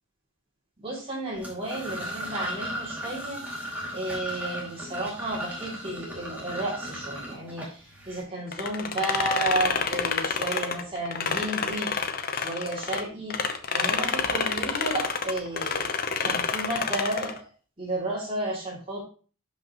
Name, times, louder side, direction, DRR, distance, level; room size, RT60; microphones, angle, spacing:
voice 1, 0.8-3.4 3.9-11.9 12.3-13.4 13.7-17.5 17.8-19.0, right 1 dB, 25° right, -4 dB, 2.6 m, -32 dB
sound 1, 1.4-8.2, equal, 10° right, 2.4 m, -36 dB
sound 2, 8.5-13.0 13.3-17.4, left 5 dB, 45° left, 0.8 m, -28 dB
11.5 x 5.3 x 3.0 m, 0.38 s
head